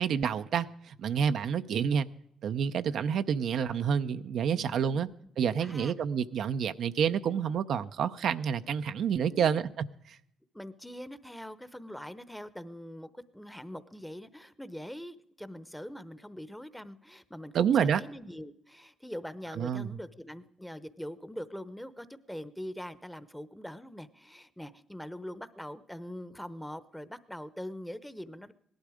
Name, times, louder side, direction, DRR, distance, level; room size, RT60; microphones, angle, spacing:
voice 1, 0.0-2.1 2.4-5.1 5.4-9.9 17.5-18.0 19.6-19.9, right 7 dB, 70° right, 0.5 m, -28 dB
voice 2, 4.6-5.1 5.4-5.9 9.2-9.7 10.5-28.5, equal, 5° left, 0.8 m, -43 dB
17.5 x 12.0 x 4.9 m
cardioid pair, 90°, 0 cm